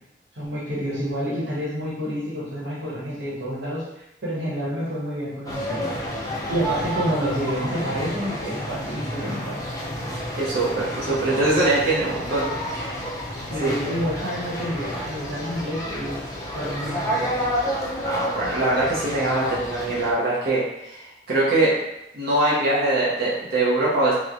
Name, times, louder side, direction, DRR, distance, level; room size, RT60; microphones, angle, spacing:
voice 1, 0.3-6.2 6.5-9.6 13.5-16.2 16.5-17.4, equal, 90° right, -6 dB, 1.0 m, -29 dB
sound 1, 5.5-20.1, equal, 20° left, 0.5 m, -30 dB
voice 2, 8.9-9.3 10.4-13.0 13.6-13.7 18.0-21.0 21.3-21.7 22.1-24.1, right 2 dB, 55° right, -8 dB, 0.6 m, -23 dB
3.0 x 2.0 x 2.5 m, 0.87 s
head